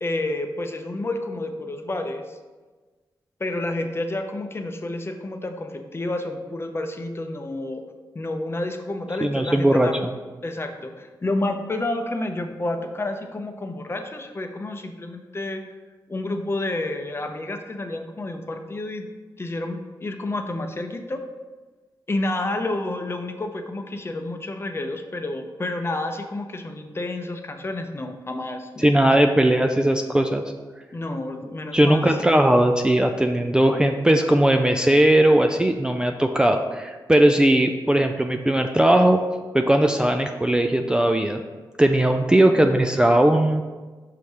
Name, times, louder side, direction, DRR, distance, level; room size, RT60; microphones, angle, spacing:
voice 1, 0.0-2.4 3.4-7.8 8.1-10.0 10.4-15.6 16.1-19.1 19.4-21.2 22.1-29.2 30.9-32.2, left 2 dB, 30° left, 5 dB, 0.6 m, -30 dB
voice 2, 9.2-9.9 28.8-30.4 31.7-39.2 39.5-41.4 41.8-43.6, right 1 dB, 10° right, 5 dB, 0.3 m, -18 dB
5.7 x 3.2 x 5.3 m, 1.3 s
cardioid pair, 75°, 8 cm